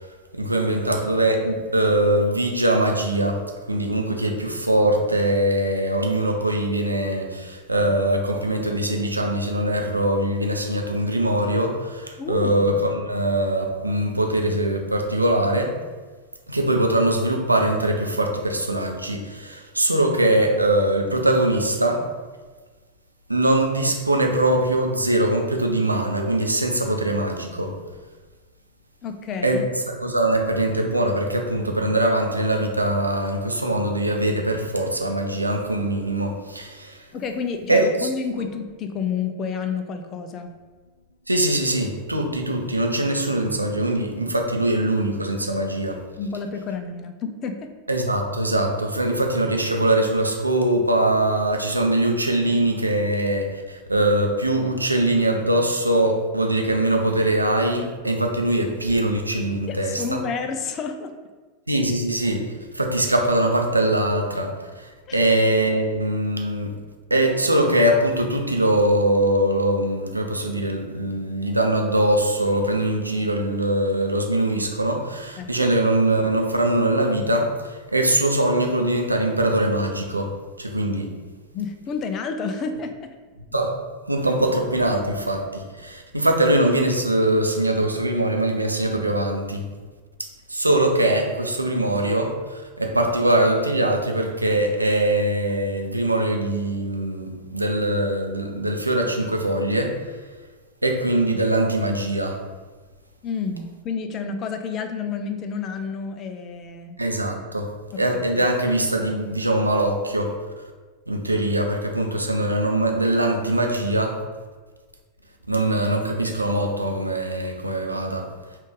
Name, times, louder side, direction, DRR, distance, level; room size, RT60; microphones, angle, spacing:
voice 1, 0.3-3.4 3.7-15.8 16.5-22.0 23.3-27.7 29.4-37.0 37.7-38.1 41.3-46.0 47.9-60.2 61.7-62.5 62.7-66.7 67.1-81.1 83.5-83.8 84.1-89.6 90.5-100.0 100.8-102.4 107.0-107.7 108.0-110.3 111.1-114.2 115.5-118.3, right 1 dB, 85° right, 2 dB, 0.6 m, -22 dB
voice 2, 12.2-13.0 29.0-29.6 37.1-40.5 46.2-47.7 59.7-61.1 65.1-65.2 75.4-75.7 81.5-83.1 103.2-107.0, left 5 dB, 30° left, 7 dB, 0.4 m, -30 dB
5.1 x 2.5 x 3.7 m, 1.4 s
figure-of-eight pair, 90°, 0 cm